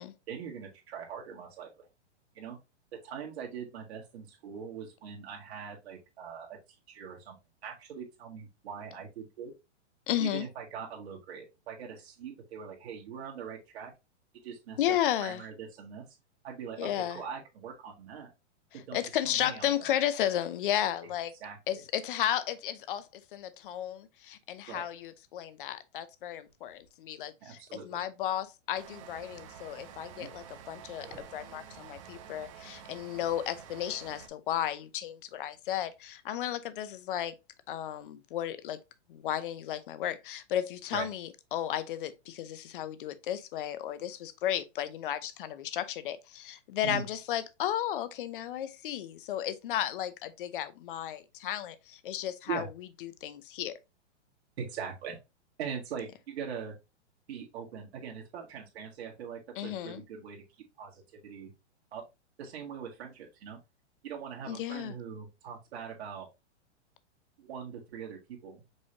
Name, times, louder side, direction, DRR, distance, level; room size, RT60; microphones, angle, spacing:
voice 1, 0.3-1.9 2.3-2.6 3.0-6.6 6.9-7.4 7.6-9.5 10.2-13.9 14.4-16.0 16.4-18.3 18.9-19.0 19.2-19.9 21.4-21.8 24.7-24.8 27.4-28.0 30.2-30.3 40.9-41.1 46.8-47.0 52.4-52.7 54.6-55.2 55.6-56.7 57.3-61.5 61.9-62.0 62.4-63.6 64.0-66.3 67.4-68.6, right 7 dB, 60° right, 1.8 m, -42 dB
voice 2, 10.1-10.5 14.8-15.4 16.8-17.2 18.7-21.3 21.7-27.6 27.8-31.1 31.3-37.3 37.7-38.8 39.1-52.7 53.0-53.7 59.6-60.0 64.4-64.9, left 11 dB, 50° left, 0.6 m, -34 dB
sound 1, 26.5-26.9 28.2-28.3 28.6-28.7 29.0-30.7 31.0-32.6 32.9-33.0 33.8-33.9 35.9-36.0, right 3 dB, 10° right, 1.2 m, -57 dB
sound 2, 28.7-34.3, right 8 dB, 30° right, 0.5 m, -49 dB
5.3 x 3.3 x 2.8 m
hypercardioid pair, 160°, 35 cm